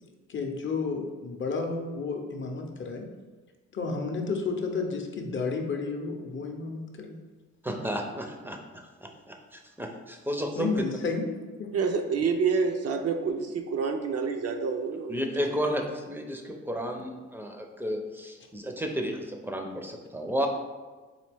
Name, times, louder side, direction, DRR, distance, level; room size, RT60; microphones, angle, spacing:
voice 1, 0.3-3.1 3.7-7.2 10.6-11.7, left 4 dB, 40° left, 3 dB, 0.6 m, -31 dB
voice 2, 7.6-10.7 15.1-20.5, equal, 5° right, 2 dB, 0.5 m, -32 dB
voice 3, 11.7-15.2, right 5 dB, 55° right, 5 dB, 0.5 m, -28 dB
4.1 x 2.8 x 3.4 m, 1.4 s
cardioid pair, 90°, 30 cm